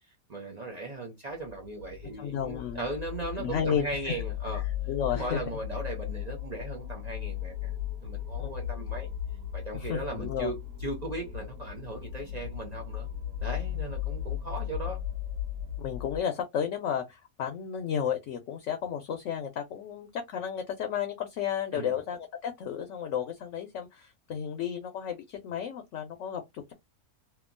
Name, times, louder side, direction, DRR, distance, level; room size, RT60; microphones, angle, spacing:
voice 1, 0.3-4.7 5.1-7.7 8.0-9.1 9.5-13.1 13.4-15.0 21.7-21.9, right 2 dB, 45° right, 0.5 m, -37 dB
sound 1, 1.4-16.2, left 11 dB, 75° right, 1.2 m, -36 dB
voice 2, 2.2-2.9 3.4-4.2 4.9-5.4 8.4-8.5 9.8-10.5 15.8-26.7, left 8 dB, 65° left, 0.9 m, -33 dB
2.9 x 2.3 x 2.4 m
omnidirectional pair, 1.5 m